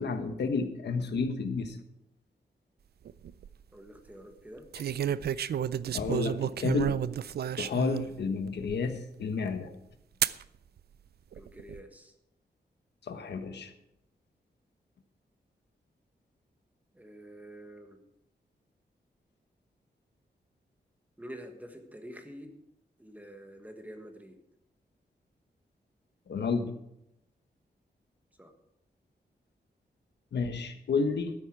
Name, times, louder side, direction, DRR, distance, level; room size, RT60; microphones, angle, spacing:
voice 1, 0.0-1.8 5.9-7.0 7.6-9.7 13.1-13.7 26.3-26.7 30.3-31.3, left 4 dB, 80° left, 8 dB, 1.3 m, -31 dB
sound 1, 3.1-3.5 4.7-8.1 8.7-8.8 10.2-10.4 11.3-11.8, right 9 dB, 70° right, 0.4 m, -31 dB
voice 2, 3.7-4.7 11.3-12.1 16.9-18.0 21.2-22.5 23.0-24.4 28.4-28.5, equal, 10° right, 5 dB, 1.4 m, -47 dB
12.5 x 10.0 x 4.7 m, 0.83 s
wide cardioid pair, 175°, 17 cm